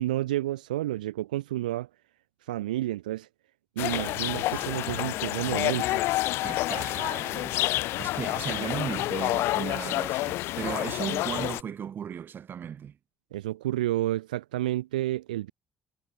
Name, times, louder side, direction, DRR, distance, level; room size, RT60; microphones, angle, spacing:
voice 1, 0.0-1.9 2.5-3.3 3.8-5.9 13.3-15.5, right 15 dB, 80° right, 1.0 m, -30 dB
sound 1, 3.8-11.6, left 17 dB, 70° left, 1.3 m, -29 dB
voice 2, 4.5-5.3 6.4-7.7 8.0-13.0, right 8 dB, 50° right, 1.3 m, -36 dB
figure-of-eight pair, 40°, 4 cm